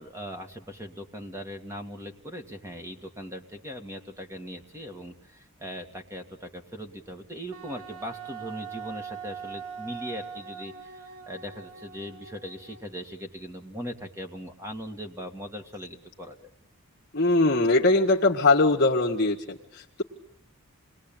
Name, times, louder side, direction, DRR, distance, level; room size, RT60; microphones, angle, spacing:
voice 1, 0.0-16.5, equal, 15° right, 5 dB, 2.2 m, -39 dB
Wind instrument woodwind instrument, 7.5-13.0, right 6 dB, 75° right, 1.8 m, -42 dB
voice 2, 17.1-20.0, left 2 dB, 45° left, -3 dB, 1.7 m, -22 dB
28.0 x 21.0 x 9.1 m, 0.76 s
head